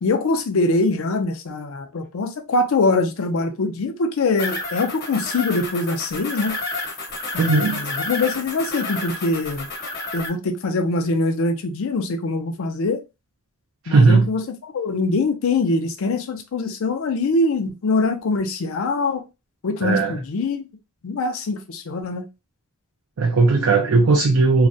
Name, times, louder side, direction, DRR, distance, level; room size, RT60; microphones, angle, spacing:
voice 1, 0.0-6.6 7.3-9.7 10.1-13.0 13.9-19.2 19.6-20.7 21.0-22.3, left 3 dB, 65° left, 0.4 m, -23 dB
sound 1, 4.4-10.3, left 2 dB, 45° left, 1.1 m, -30 dB
voice 2, 7.4-7.8 13.8-14.3 19.8-20.2 23.2-24.7, right 3 dB, 65° right, 0.4 m, -17 dB
2.4 x 2.1 x 2.6 m
head